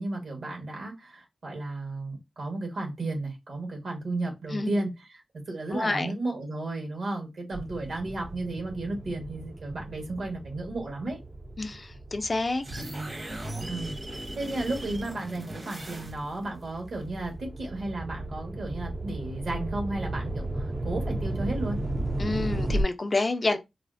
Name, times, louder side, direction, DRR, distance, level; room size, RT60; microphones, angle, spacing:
voice 1, 0.0-5.1 5.5-11.2 13.7-21.8, right 2 dB, 80° right, 1.4 m, -33 dB
voice 2, 4.5-4.9 5.7-6.1 11.6-12.6 22.2-23.6, left 2 dB, 40° left, 0.4 m, -28 dB
sound 1, 7.5-14.3 14.9-22.8, right 1 dB, 35° right, 0.4 m, -35 dB
sound 2, 12.6-16.5, right 1 dB, 55° right, 1.0 m, -38 dB
4.0 x 2.0 x 2.5 m
wide cardioid pair, 75°, 0 cm